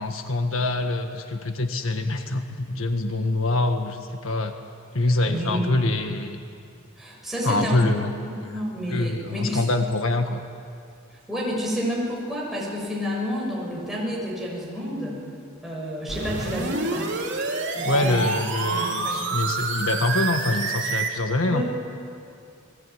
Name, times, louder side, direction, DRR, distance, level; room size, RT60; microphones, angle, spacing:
voice 1, 0.0-4.5 4.9-6.4 7.4-8.5 8.9-10.4 17.8-21.6, left 2 dB, 75° left, 6 dB, 1.6 m, -25 dB
voice 2, 5.3-5.9 7.0-7.9 8.5-9.7 11.3-15.2 15.6-17.1 17.7-18.3 18.7-19.2 21.5-21.6, equal, ahead, -4 dB, 7.0 m, -29 dB
sound 1, 16.1-21.1, right 4 dB, 55° right, 4.1 m, -28 dB
29.5 x 21.5 x 9.5 m, 2.5 s
head